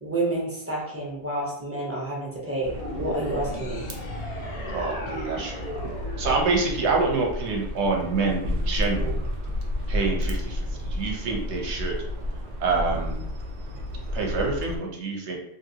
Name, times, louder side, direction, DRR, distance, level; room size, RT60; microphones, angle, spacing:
voice 1, 0.0-3.9, right 2 dB, 15° right, -5 dB, 0.5 m, -29 dB
sound 1, 2.6-14.8, left 1 dB, 85° right, 0.4 m, -32 dB
sound 2, 2.7-7.2, left 1 dB, 55° left, 0.4 m, -37 dB
voice 2, 4.7-5.7 6.2-9.2 9.9-11.9 12.6-13.2 14.1-15.4, right 4 dB, 65° right, 0 dB, 0.9 m, -26 dB
2.8 x 2.5 x 2.7 m, 0.75 s
omnidirectional pair, 1.4 m